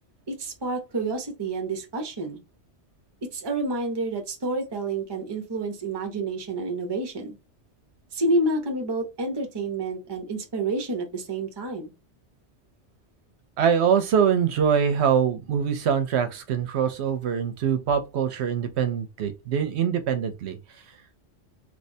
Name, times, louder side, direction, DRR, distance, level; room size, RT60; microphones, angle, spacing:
voice 1, 0.3-2.4 3.2-7.4 8.1-11.9, right 2 dB, 25° right, 0.7 m, -29 dB
voice 2, 13.6-20.6, right 7 dB, 70° right, 0.9 m, -23 dB
3.3 x 3.2 x 2.7 m
omnidirectional pair, 1.2 m